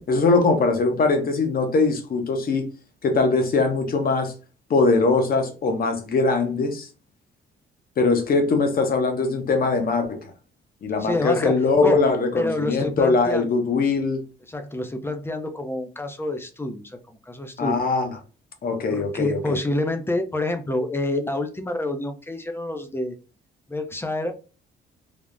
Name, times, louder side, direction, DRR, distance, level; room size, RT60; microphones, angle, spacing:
voice 1, 0.1-2.7 3.0-4.3 4.7-6.9 8.0-10.2 10.8-14.2 17.6-18.1 18.6-19.6, left 3 dB, 50° left, 0.7 m, -21 dB
voice 2, 11.0-12.1 12.3-13.6 14.5-17.0 17.3-17.8 18.9-23.2 23.7-24.3, left 1 dB, 10° left, 0.5 m, -28 dB
3.4 x 2.0 x 2.4 m
cardioid pair, 90°, 20 cm